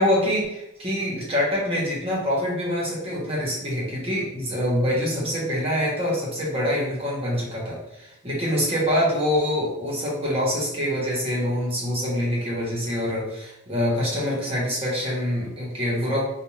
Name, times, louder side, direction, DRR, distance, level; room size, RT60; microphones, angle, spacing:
voice 1, 0.0-16.2, equal, 30° right, -5 dB, 1.2 m, -25 dB
4.2 x 2.4 x 3.1 m, 0.85 s
head